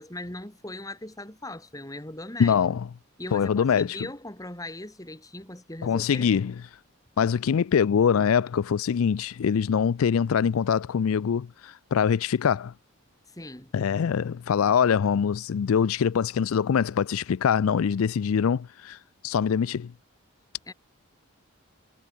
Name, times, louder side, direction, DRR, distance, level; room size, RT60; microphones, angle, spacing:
voice 1, 0.0-2.6 3.2-6.3 13.3-13.7 20.7-20.8, left 1 dB, 15° left, 3.5 m, -39 dB
voice 2, 2.4-2.9 3.3-3.9 5.8-6.5 7.2-12.7 13.7-19.0 19.2-19.9, left 7 dB, 75° left, 0.4 m, -23 dB
head